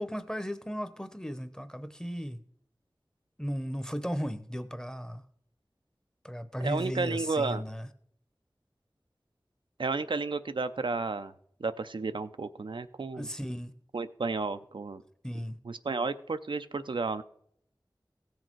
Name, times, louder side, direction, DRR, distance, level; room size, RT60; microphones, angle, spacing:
voice 1, 0.0-2.4 3.4-5.2 6.2-7.9 13.1-13.7 15.2-15.6, equal, 10° left, 0.8 m, -35 dB
voice 2, 6.6-7.6 9.8-11.3 11.6-13.3 13.9-15.0 15.7-17.2, right 3 dB, 85° right, 0.5 m, -32 dB
16.0 x 6.4 x 4.5 m
wide cardioid pair, 45°, 8 cm